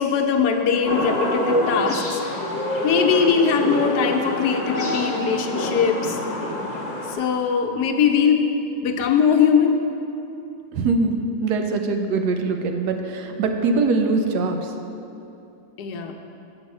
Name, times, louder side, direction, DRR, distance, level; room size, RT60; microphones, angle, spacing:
voice 1, 0.0-2.2 2.8-6.2 7.1-8.5 8.8-9.8 15.8-16.1, left 7 dB, 80° left, 4 dB, 1.2 m, -21 dB
sound 1, 0.8-7.1, equal, 35° left, 0.8 m, -26 dB
voice 2, 10.7-11.2 11.4-14.7, right 3 dB, 85° right, 5 dB, 1.2 m, -22 dB
6.9 x 5.4 x 5.3 m, 2.7 s
omnidirectional pair, 1.7 m